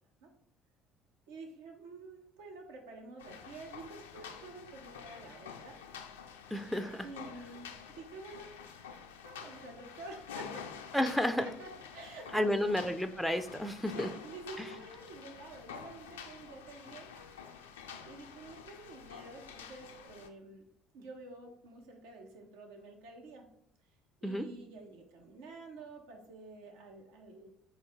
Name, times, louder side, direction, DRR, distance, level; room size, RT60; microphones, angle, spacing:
voice 1, 1.3-5.8 7.0-8.6 9.2-10.7 11.6-12.8 13.8-20.7 20.9-23.5 24.2-27.5, right 2 dB, 70° right, 2 dB, 0.7 m, -49 dB
sound 1, 3.2-20.3, left 7 dB, 75° left, 0.3 m, -49 dB
voice 2, 6.5-7.1 10.9-11.5 12.3-14.1 24.2-24.5, left 1 dB, ahead, 9 dB, 0.4 m, -31 dB
4.6 x 2.7 x 3.8 m, 0.73 s
figure-of-eight pair, 55°, 0 cm